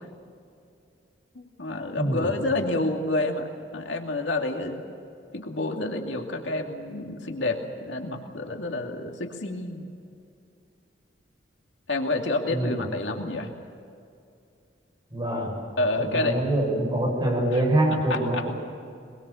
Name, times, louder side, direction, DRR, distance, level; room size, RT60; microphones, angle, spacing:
voice 1, 1.3-3.5 3.7-4.8 5.3-9.9 11.9-13.5 15.8-16.4 17.5-17.6 17.9-18.5, left 2 dB, 70° left, 2 dB, 2.5 m, -29 dB
voice 2, 12.5-12.8 15.1-15.6 16.0-18.5, right 1 dB, 25° right, -1 dB, 7.2 m, -25 dB
23.0 x 22.5 x 7.1 m, 2.5 s
head